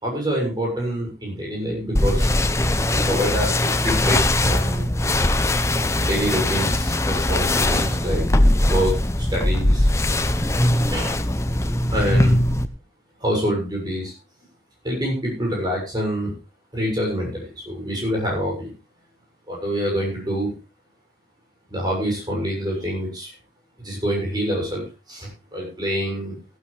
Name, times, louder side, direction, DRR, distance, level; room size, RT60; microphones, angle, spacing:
voice 1, 0.0-2.3 2.9-4.9 6.0-8.2 8.7-9.9 10.9-11.2 11.9-12.4 13.2-14.1 14.8-16.3 16.7-18.7 19.5-20.5 21.7-23.3 23.8-26.3, equal, 25° right, -1 dB, 6.8 m, -26 dB
sound 1, 1.9-12.6, left 1 dB, 15° left, 0.7 m, -20 dB
14.5 x 12.5 x 3.4 m, 0.31 s
head